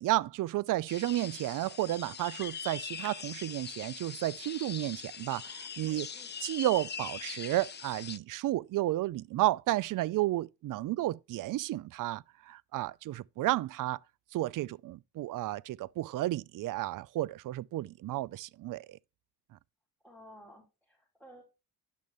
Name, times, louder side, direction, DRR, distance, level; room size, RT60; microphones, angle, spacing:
voice 1, 0.0-6.1 6.4-14.0 14.3-19.0, right 16 dB, 50° right, 0.5 m, -32 dB
sound 1, 0.9-8.2, left 7 dB, 25° left, 0.5 m, -42 dB
voice 2, 5.9-6.3 20.0-21.4, equal, ahead, 5.0 m, -55 dB
10.5 x 6.4 x 3.1 m
supercardioid pair, 65°, 41 cm